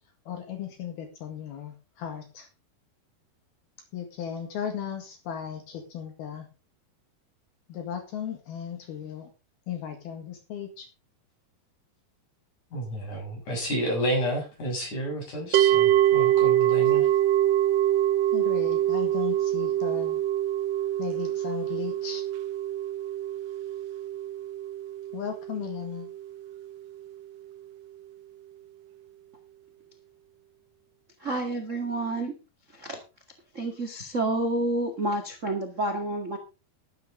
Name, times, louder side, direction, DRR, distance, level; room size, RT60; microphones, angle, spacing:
voice 1, 0.3-2.5 3.9-6.5 7.7-9.3 9.7-10.9 18.3-20.2 21.0-22.2 25.1-26.1, left 8 dB, 75° left, 3.8 m, -36 dB
voice 2, 12.7-17.1, right 1 dB, 45° left, 8.3 m, -30 dB
sound 1, 15.5-26.7, right 12 dB, 75° right, 2.0 m, -25 dB
voice 3, 31.2-32.3 32.7-33.0 33.5-36.4, right 2 dB, 35° right, 1.3 m, -29 dB
13.0 x 12.0 x 3.8 m
omnidirectional pair, 4.6 m